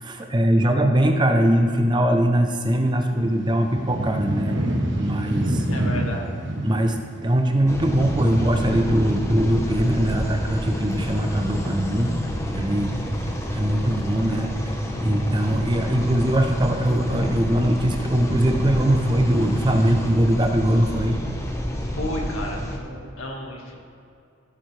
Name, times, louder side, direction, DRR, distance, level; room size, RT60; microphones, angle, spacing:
voice 1, 0.0-4.6 4.9-5.6 6.6-12.1 12.4-13.0 13.5-21.2, right 1 dB, 20° right, 4 dB, 0.7 m, -21 dB
sound 1, 2.8-9.4, right 1 dB, 60° right, 1.4 m, -27 dB
voice 2, 5.7-6.4 22.0-23.7, left 1 dB, 80° left, 0 dB, 1.8 m, -32 dB
sound 2, 7.7-22.8, equal, 15° left, 0.9 m, -29 dB
15.5 x 7.9 x 3.4 m, 2.4 s
head